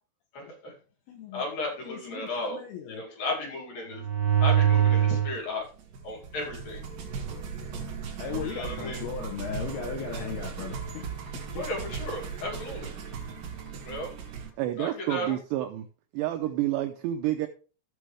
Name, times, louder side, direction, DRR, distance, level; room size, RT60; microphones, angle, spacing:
voice 1, 0.3-0.7 1.3-2.6 2.9-4.0 4.4-5.7 6.0-6.8 8.4-9.0 11.6-12.9 13.8-14.1 14.8-15.4, left 2 dB, 50° left, 0 dB, 3.8 m, -34 dB
voice 2, 1.1-1.4 1.8-3.0 8.2-11.1 11.5-11.7, left 7 dB, 75° left, 3 dB, 2.4 m, -37 dB
sound 1, 3.9-5.4 5.9-14.5, right 9 dB, 55° right, 2.8 m, -30 dB
voice 3, 14.6-15.9 16.1-17.5, right 14 dB, 90° right, 6 dB, 2.4 m, -29 dB
14.5 x 6.2 x 3.3 m, 0.37 s
omnidirectional pair, 5.8 m